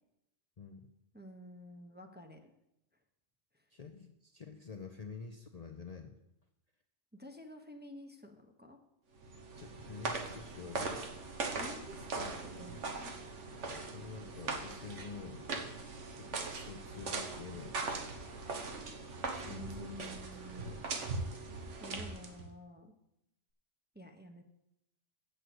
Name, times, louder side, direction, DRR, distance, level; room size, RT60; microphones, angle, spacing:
voice 1, 1.1-2.5 3.5-3.6 7.1-8.8 11.5-13.1 19.5-20.8 21.8-22.9 23.9-24.4, equal, 10° right, 3 dB, 0.8 m, -50 dB
voice 2, 3.7-6.1 9.6-11.1 13.9-15.4 16.2-17.8 19.3-20.8, left 5 dB, 40° left, 4 dB, 0.6 m, -48 dB
sound 1, 9.2-22.5, right 3 dB, 85° right, 1.5 m, -40 dB
7.9 x 6.6 x 7.8 m, 0.84 s
omnidirectional pair, 1.2 m